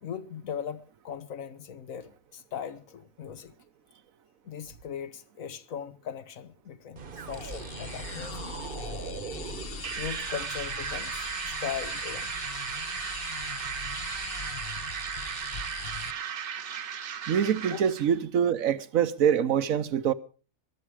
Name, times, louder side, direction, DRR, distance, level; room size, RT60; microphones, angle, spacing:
voice 1, 0.0-3.5 4.4-8.5 9.9-12.3 17.7-17.8, left 8 dB, 80° left, 1.4 m, -39 dB
sound 1, 7.0-10.9, right 5 dB, 45° right, 1.1 m, -41 dB
sound 2, 7.3-16.1, left 5 dB, 50° left, 1.1 m, -40 dB
sound 3, 9.8-18.1, right 8 dB, 60° right, 1.2 m, -36 dB
voice 2, 17.3-20.1, right 8 dB, 85° right, 1.3 m, -25 dB
22.5 x 8.7 x 4.8 m
omnidirectional pair, 1.4 m